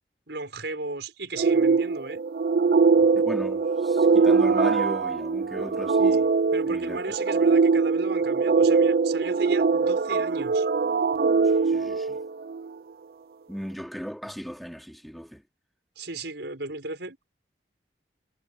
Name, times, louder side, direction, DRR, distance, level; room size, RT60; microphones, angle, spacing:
voice 1, 0.3-2.2 6.5-10.7 16.0-17.2, right 2 dB, 80° right, 5.2 m, -35 dB
sound 1, 1.4-12.7, right 4 dB, 55° right, 0.4 m, -22 dB
voice 2, 3.1-6.3 6.7-7.2 11.4-12.2 13.5-15.4, equal, ahead, 3.9 m, -37 dB
head